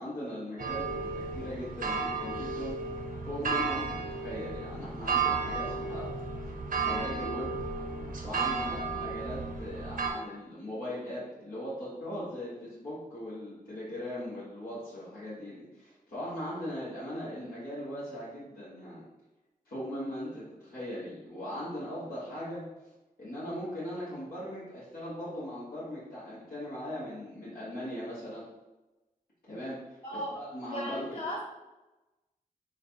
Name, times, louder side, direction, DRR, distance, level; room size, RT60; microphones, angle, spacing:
voice 1, 0.0-2.7 3.2-6.1 6.8-7.5 8.2-19.0 19.7-22.6 23.2-28.4 29.4-31.2, equal, 90° left, -10 dB, 1.3 m, -39 dB
sound 1, 0.6-10.1, right 4 dB, 70° right, 0.6 m, -33 dB
voice 2, 30.0-30.4 30.7-31.4, equal, 35° left, -4 dB, 0.7 m, -37 dB
3.2 x 2.4 x 4.3 m, 1.0 s
cardioid pair, 55°, 15 cm